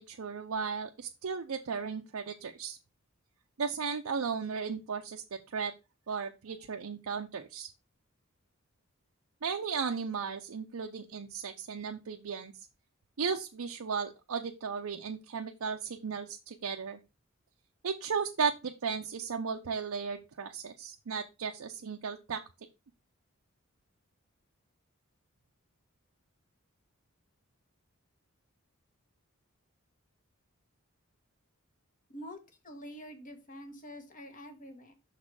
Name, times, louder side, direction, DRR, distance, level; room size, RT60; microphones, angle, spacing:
voice 1, 0.0-2.8 3.6-5.2 5.5-5.7 6.1-7.7 9.4-12.7 13.2-17.0 17.8-22.4, right 5 dB, 85° right, 3 dB, 0.6 m, -35 dB
voice 2, 32.1-32.4 32.6-34.9, equal, 40° left, 6 dB, 1.3 m, -46 dB
6.2 x 4.1 x 4.7 m, 0.27 s
head